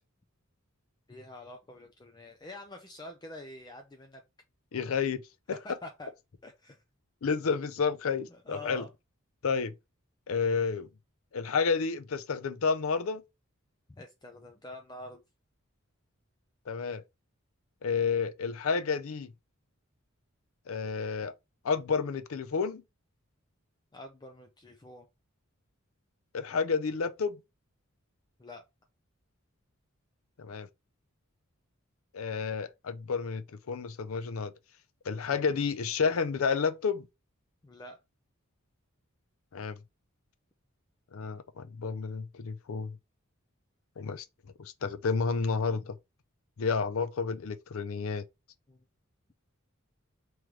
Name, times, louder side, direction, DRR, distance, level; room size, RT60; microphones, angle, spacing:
voice 1, 1.1-4.2 5.5-6.1 6.4-6.8 8.3-8.9 14.0-15.2 23.9-25.1 28.4-28.6 37.6-38.0 48.7-48.8, left 2 dB, 20° left, 0.5 m, -46 dB
voice 2, 4.7-5.2 7.2-8.8 9.4-9.7 10.3-10.9 11.3-13.2 16.7-17.0 17.8-19.3 20.7-21.3 21.6-22.8 26.3-27.4 30.4-30.7 32.1-34.5 35.0-37.1 39.5-39.8 41.1-43.0 44.0-44.3 44.6-46.0 46.6-48.2, left 5 dB, 70° left, 0.5 m, -30 dB
3.1 x 3.1 x 3.6 m
head